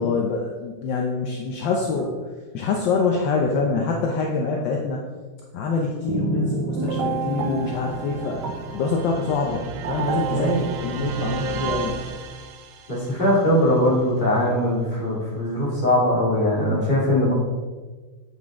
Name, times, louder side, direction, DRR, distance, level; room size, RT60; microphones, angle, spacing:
voice 1, 0.0-2.2 2.5-5.0 5.5-8.4 8.7-12.0, left 4 dB, 70° left, 0 dB, 1.4 m, -25 dB
sound 1, 6.1-12.9, right 5 dB, 65° right, 1.2 m, -29 dB
voice 2, 12.9-17.3, left 1 dB, 25° left, -6 dB, 2.5 m, -21 dB
7.8 x 7.5 x 3.6 m, 1.4 s
omnidirectional pair, 2.2 m